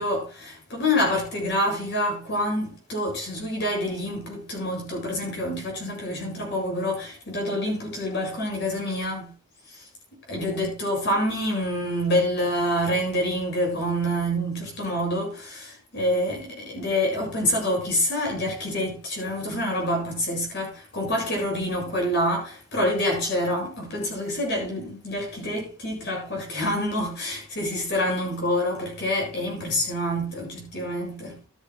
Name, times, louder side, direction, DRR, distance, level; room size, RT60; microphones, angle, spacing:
voice 1, 0.0-9.3 9.7-9.8 10.3-31.4, left 1 dB, 55° left, 7.5 m, -27 dB
14.0 x 13.0 x 2.3 m
head